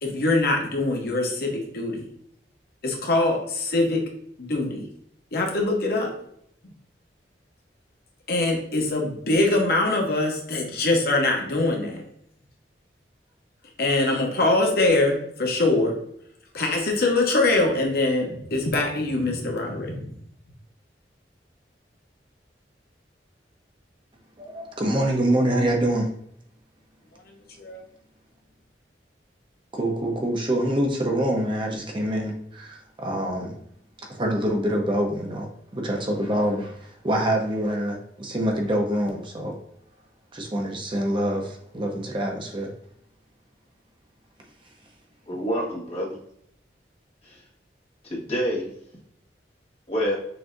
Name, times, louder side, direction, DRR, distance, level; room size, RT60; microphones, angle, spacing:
voice 1, 0.0-2.1 2.8-4.0 4.4-4.9 5.3-6.1 6.6-6.7 8.3-12.0 13.8-15.9 16.5-20.1 27.6-27.8, left 2 dB, 60° left, 2 dB, 0.8 m, -23 dB
voice 2, 24.4-26.1 29.7-33.6 34.1-39.5 40.3-42.7, right 1 dB, 30° right, 1 dB, 0.7 m, -25 dB
voice 3, 45.3-46.1 47.2-47.4 48.0-48.7 49.9-50.2, equal, 35° left, -3 dB, 1.3 m, -27 dB
6.1 x 2.7 x 2.5 m, 0.71 s
head